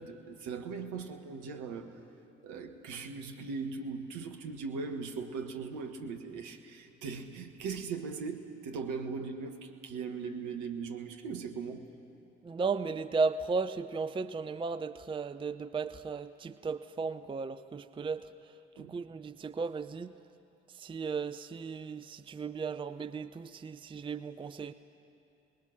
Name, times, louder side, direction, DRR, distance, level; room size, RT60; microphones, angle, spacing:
voice 1, 0.0-2.0 2.4-11.9 18.8-19.0, right 5 dB, 60° right, 5 dB, 1.5 m, -39 dB
voice 2, 12.4-20.1 20.7-24.7, right 4 dB, 15° right, 13 dB, 0.6 m, -35 dB
29.5 x 20.5 x 5.9 m, 2.8 s
figure-of-eight pair, 45°, 34 cm